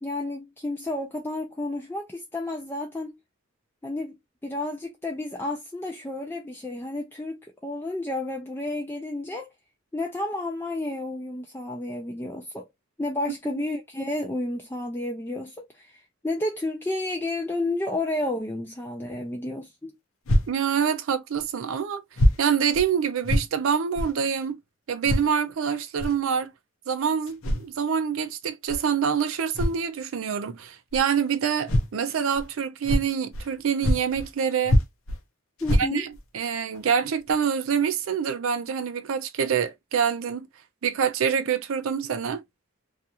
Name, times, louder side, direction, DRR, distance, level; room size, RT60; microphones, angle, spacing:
voice 1, 0.0-3.1 3.8-9.5 9.9-12.7 13.0-19.9 35.6-36.1, left 2 dB, 10° left, 0.4 m, -31 dB
sound 1, 20.3-20.5 21.4-21.5 22.2-22.4 22.7-22.9 23.2-23.5 24.0-24.1 25.0-25.3 26.0-26.2 27.3-27.7 28.7-28.8 29.5-29.8 30.9-31.0 31.7-31.9 32.4-32.5 32.8-33.5 33.8-34.3 34.6-35.2 35.6-36.2 36.7-36.8 37.3-37.4, equal, 70° left, 0.7 m, -24 dB
voice 2, 20.5-22.0 22.4-24.6 24.9-26.5 26.9-34.8 35.8-36.1 36.3-40.5 40.8-42.4, right 7 dB, 75° right, 0.4 m, -26 dB
2.4 x 2.4 x 2.7 m
head